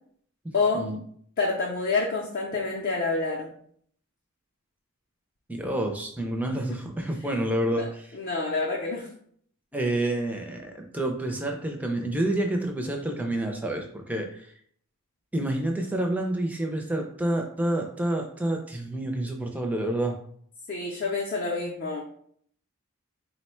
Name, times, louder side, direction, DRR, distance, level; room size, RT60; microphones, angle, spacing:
voice 1, 0.5-0.9 1.4-3.5 7.7-7.8 8.1-9.1 20.7-22.0, left 3 dB, 45° left, -3 dB, 0.5 m, -27 dB
voice 2, 5.5-8.2 9.7-14.5 15.3-20.1, right 1 dB, 5° right, 2 dB, 0.4 m, -28 dB
3.8 x 2.1 x 4.3 m, 0.62 s
head